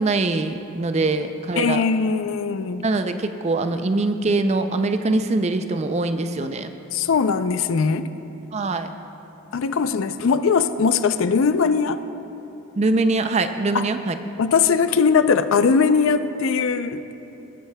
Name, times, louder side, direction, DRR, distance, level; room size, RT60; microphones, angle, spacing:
voice 1, 0.0-1.8 2.8-6.7 8.5-8.9 12.8-14.1, right 2 dB, 30° right, 9 dB, 0.4 m, -23 dB
voice 2, 1.6-2.9 6.9-8.1 9.5-12.0 13.7-13.9 14.4-17.1, left 5 dB, 70° left, 11 dB, 0.4 m, -20 dB
21.0 x 9.0 x 2.2 m, 2.9 s
head